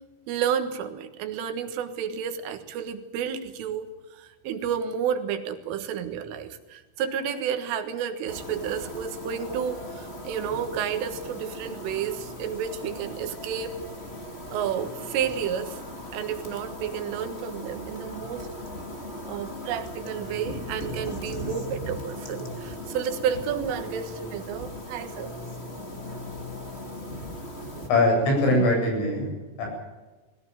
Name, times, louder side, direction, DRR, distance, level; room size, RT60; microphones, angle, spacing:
voice 1, 0.3-13.7 14.5-15.8 16.1-18.5 19.2-25.4 27.8-27.9, right 8 dB, 80° right, 7 dB, 4.1 m, -31 dB
sound 1, 8.3-27.9, left 1 dB, 20° left, 1.8 m, -38 dB
voice 2, 27.9-29.3 29.6-29.7, left 1 dB, 80° left, 1 dB, 10.5 m, -21 dB
21.5 x 16.5 x 9.2 m, 1.2 s
omnidirectional pair, 5.7 m